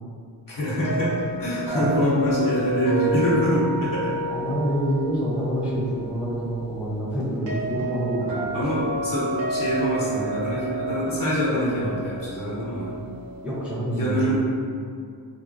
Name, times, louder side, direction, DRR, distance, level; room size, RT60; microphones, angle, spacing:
voice 1, 0.5-4.2 8.5-13.0 13.9-14.3, equal, 45° left, -8 dB, 1.0 m, -25 dB
sound 1, 0.8-13.7, right 1 dB, 65° right, 1.0 m, -31 dB
voice 2, 1.7-2.4 4.3-8.5 13.4-14.3, right 1 dB, 5° right, -8 dB, 0.7 m, -27 dB
3.1 x 2.1 x 2.6 m, 2.3 s
cardioid pair, 65°, 45 cm